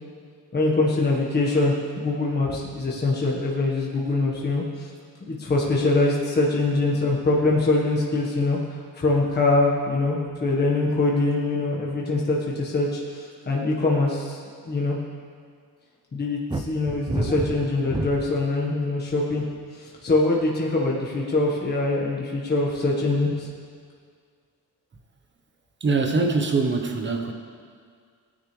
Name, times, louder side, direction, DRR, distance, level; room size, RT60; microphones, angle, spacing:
voice 1, 0.5-4.9 5.3-14.4 14.7-15.0 16.1-19.5 19.7-23.5, left 2 dB, 30° left, -3 dB, 1.5 m, -23 dB
sound 1, 16.5-18.4 19.1-19.5, right 2 dB, 15° right, 0.6 m, -29 dB
voice 2, 25.8-27.3, right 3 dB, 30° right, 4 dB, 1.1 m, -23 dB
18.0 x 9.9 x 3.4 m, 2.1 s
cardioid pair, 135°, 36 cm